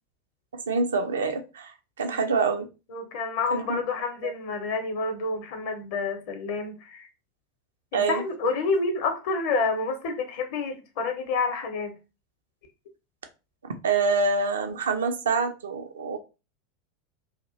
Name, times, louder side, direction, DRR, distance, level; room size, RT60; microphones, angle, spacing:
voice 1, 0.5-1.7 2.0-2.7 3.5-3.8 4.2-4.3 7.9-8.2 13.6-16.2, right 4 dB, 70° right, 0.4 m, -26 dB
voice 2, 2.0-2.4 2.9-7.1 7.9-11.9, left 4 dB, 50° left, 0.7 m, -29 dB
2.4 x 2.0 x 2.7 m
figure-of-eight pair, 85°, 0 cm